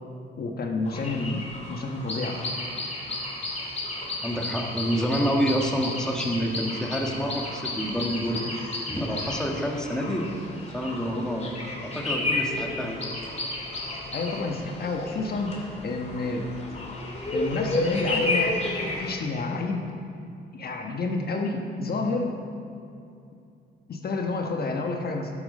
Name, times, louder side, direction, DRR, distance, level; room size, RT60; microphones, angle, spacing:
voice 1, 0.4-2.4 14.1-16.5 17.3-18.6 18.8-19.9 20.5-22.3 23.9-25.3, left 3 dB, 50° left, 2 dB, 1.3 m, -29 dB
sound 1, 0.9-19.1, left 2 dB, 35° left, 2.7 m, -32 dB
voice 2, 4.2-8.5 8.9-10.3 10.7-13.0, equal, 5° left, 0 dB, 1.6 m, -28 dB
11.5 x 8.7 x 5.4 m, 2.5 s
cardioid pair, 90°, 20 cm